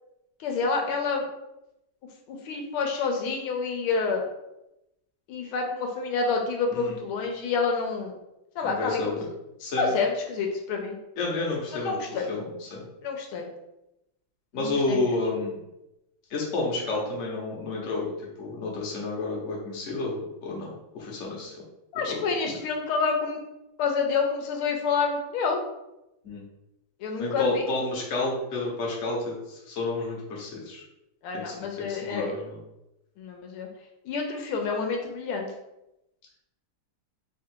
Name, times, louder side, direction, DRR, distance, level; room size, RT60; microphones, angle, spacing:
voice 1, 0.4-1.3 2.3-4.2 5.3-8.1 8.5-9.2 9.8-11.0 11.7-12.3 13.0-13.5 14.5-15.1 21.9-23.4 23.8-25.6 27.0-27.6 31.2-32.3 33.2-33.7 34.0-35.5, left 4 dB, 80° left, 2 dB, 1.5 m, -28 dB
voice 2, 8.6-9.3 9.6-9.9 11.2-12.0 12.3-12.8 14.5-15.6 16.3-18.1 18.4-21.5 22.1-22.2 22.4-22.6 26.2-26.4 27.2-30.8 31.3-32.6, left 2 dB, 45° left, -3 dB, 1.0 m, -30 dB
3.6 x 2.5 x 4.4 m, 0.89 s
omnidirectional pair, 2.3 m